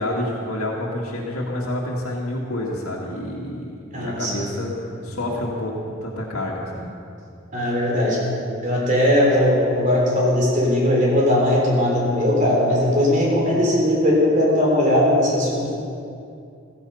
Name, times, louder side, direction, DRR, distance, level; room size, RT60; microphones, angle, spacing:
voice 1, 0.0-6.9, left 1 dB, 85° left, -4 dB, 1.9 m, -28 dB
voice 2, 3.9-4.4 7.5-8.2 8.6-15.7, left 1 dB, 35° right, -3 dB, 3.8 m, -19 dB
15.5 x 14.0 x 5.6 m, 2.5 s
head